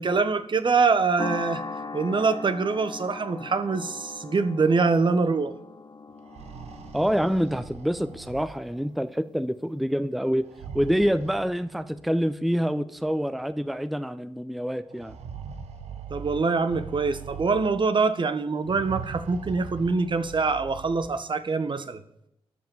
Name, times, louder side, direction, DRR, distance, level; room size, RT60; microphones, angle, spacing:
voice 1, 0.0-1.6 1.9-5.5 16.1-22.0, right 4 dB, 45° right, 11 dB, 1.2 m, -24 dB
sound 1, 1.2-9.7, left 3 dB, 40° left, 1.2 m, -40 dB
sound 2, 6.1-9.0 10.4-12.1 13.1-13.2 13.5-13.6 14.9-18.0 18.6-21.2, right 6 dB, 80° right, 1.2 m, -41 dB
voice 2, 6.9-10.5 10.7-15.1, equal, ahead, 13 dB, 0.7 m, -26 dB
12.5 x 5.8 x 7.2 m, 0.78 s
supercardioid pair, 45°, 11 cm